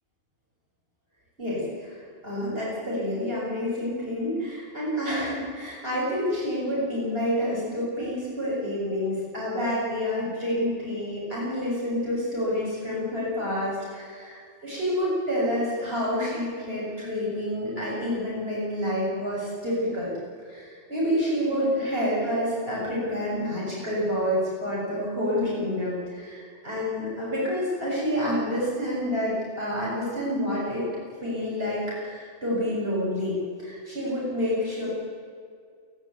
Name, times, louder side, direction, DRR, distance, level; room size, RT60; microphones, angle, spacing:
voice 1, 1.4-20.1 20.4-30.9 31.2-34.9, equal, 55° right, -7 dB, 7.3 m, -28 dB
28.5 x 12.0 x 9.5 m, 2.1 s
omnidirectional pair, 1.2 m